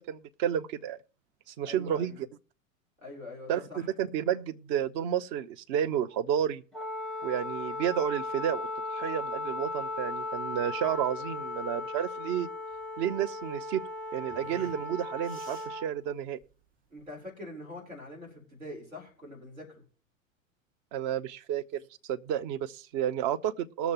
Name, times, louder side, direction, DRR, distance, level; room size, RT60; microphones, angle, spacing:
voice 1, 0.1-1.0 1.5-2.3 3.5-6.6 7.2-8.7 8.9-12.5 13.0-13.8 14.1-16.4 20.9-23.9, right 10 dB, 35° right, 0.6 m, -31 dB
voice 2, 1.6-2.2 3.0-3.9 16.9-19.8, left 1 dB, 80° right, 4.0 m, -44 dB
Wind instrument woodwind instrument, 6.7-15.9, left 2 dB, ahead, 0.7 m, -37 dB
sound 1, 9.2-17.3, right 3 dB, 50° right, 2.9 m, -57 dB
19.5 x 6.9 x 3.0 m
figure-of-eight pair, 90°, 40 cm